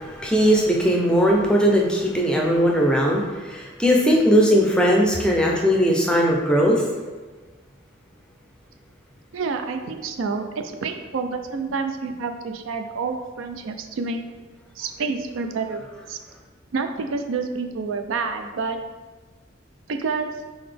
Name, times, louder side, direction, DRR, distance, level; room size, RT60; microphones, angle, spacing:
voice 1, 0.0-6.8, equal, 5° left, -1 dB, 0.5 m, -19 dB
voice 2, 9.3-14.2 14.8-15.8 16.1-16.2 16.7-18.8 19.9-20.3, right 4 dB, 90° right, 6 dB, 0.4 m, -28 dB
4.0 x 3.9 x 3.3 m, 1.3 s
head